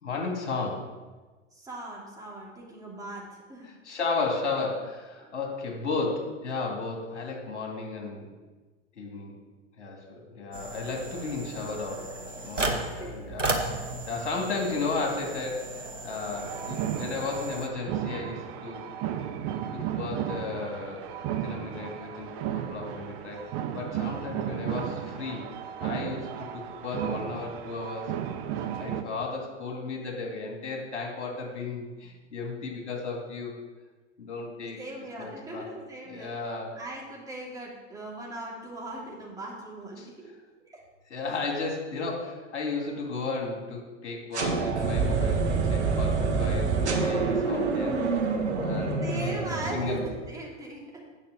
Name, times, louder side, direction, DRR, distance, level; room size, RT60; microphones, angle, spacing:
voice 1, 0.0-0.9 3.6-8.3 8.9-9.4 9.8-12.1 12.4-13.6 14.1-18.8 19.7-25.5 25.8-28.1 28.8-33.5 34.2-34.8 35.2-35.6 36.1-36.8 40.0-40.1 41.1-48.0 48.6-50.0, left 3 dB, 65° left, 0 dB, 2.5 m, -34 dB
voice 2, 1.5-3.7 12.7-13.8 34.8-40.1 40.7-40.8 49.0-50.8, right 2 dB, 10° right, -4 dB, 2.9 m, -39 dB
sound 1, 10.5-17.7, right 2 dB, 90° right, 1.2 m, -35 dB
sound 2, 16.4-29.0, right 10 dB, 35° right, 0.8 m, -34 dB
sound 3, 44.3-50.3, right 4 dB, 65° right, 1.6 m, -27 dB
8.5 x 6.4 x 6.6 m, 1.3 s
figure-of-eight pair, 90°, 36 cm